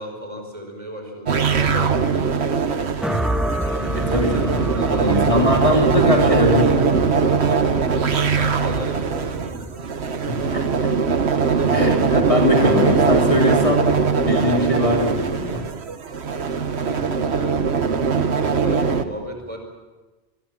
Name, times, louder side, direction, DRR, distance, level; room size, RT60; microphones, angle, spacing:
voice 1, 0.0-3.6 4.3-5.8 7.9-9.8 11.5-11.9 16.3-17.6 18.3-19.6, equal, 30° right, 3 dB, 5.1 m, -35 dB
sound 1, 1.3-19.0, right 5 dB, 80° right, 1.4 m, -21 dB
sound 2, 3.0-11.3, equal, ahead, 1.7 m, -29 dB
voice 2, 3.9-4.6 4.9-7.5 10.3-10.9 11.7-13.9 14.2-15.6, left 1 dB, 30° left, 1 dB, 3.1 m, -22 dB
26.5 x 21.5 x 7.4 m, 1.2 s
omnidirectional pair, 1.1 m